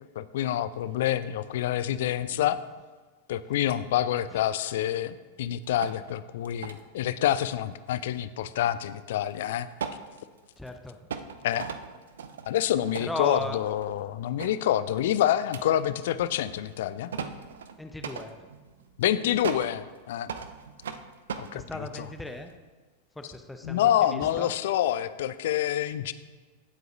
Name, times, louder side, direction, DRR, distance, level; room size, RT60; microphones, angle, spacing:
voice 1, 0.0-2.6 3.3-9.7 11.4-11.7 12.5-17.1 19.0-20.3 21.4-22.1 23.6-26.1, left 11 dB, 55° left, 15 dB, 0.4 m, -27 dB
sound 1, 5.6-6.2 6.4-6.9 9.2-9.3 9.6-10.7 11.1-14.1 14.4-14.6 15.4-22.6, right 6 dB, 65° right, 0.6 m, -39 dB
voice 2, 10.6-11.0 13.0-13.6 17.8-18.5 21.5-22.5 23.2-24.5, left 1 dB, 5° left, 6 dB, 0.7 m, -37 dB
17.0 x 7.7 x 2.6 m, 1.3 s
figure-of-eight pair, 90°, 0 cm